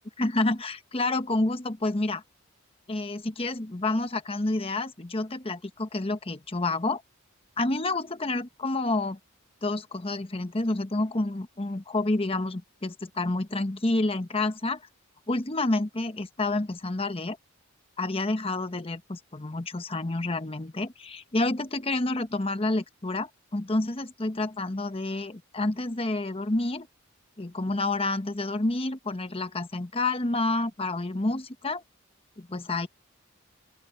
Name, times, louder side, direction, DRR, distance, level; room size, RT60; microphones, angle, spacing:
voice 1, 0.2-2.2 2.9-7.0 7.6-9.2 9.6-14.8 15.3-17.4 18.0-26.9 27.4-31.8 32.4-32.9, left 2 dB, 25° left, 1.0 m, -29 dB
open air
head